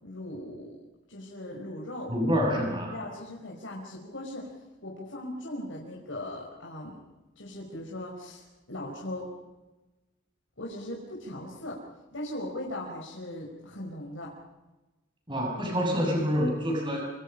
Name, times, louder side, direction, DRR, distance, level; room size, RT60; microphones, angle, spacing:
voice 1, 0.0-0.8 1.1-2.1 2.6-4.5 4.8-7.0 7.4-9.3 10.6-11.8 12.1-14.3, left 1 dB, 75° left, -3 dB, 5.3 m, -39 dB
voice 2, 2.1-2.9 15.3-17.0, equal, 25° right, 0 dB, 7.6 m, -27 dB
27.0 x 27.0 x 5.7 m, 1.1 s
head